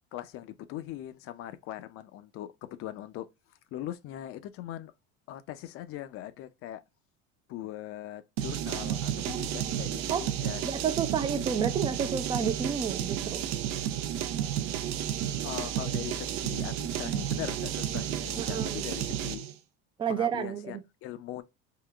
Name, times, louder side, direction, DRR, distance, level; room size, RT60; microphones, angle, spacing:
voice 1, 0.1-3.3 3.7-4.9 5.3-6.8 7.5-10.9 15.4-19.5 20.1-21.4, left 13 dB, 45° left, 0.5 m, -40 dB
sound 1, 8.4-19.5, right 10 dB, 65° right, 0.6 m, -32 dB
voice 2, 9.2-9.7 10.1-10.3 10.6-13.4 18.4-18.8 20.0-20.8, right 7 dB, 15° right, 0.4 m, -31 dB
3.7 x 2.2 x 3.3 m
supercardioid pair, 120°, 32 cm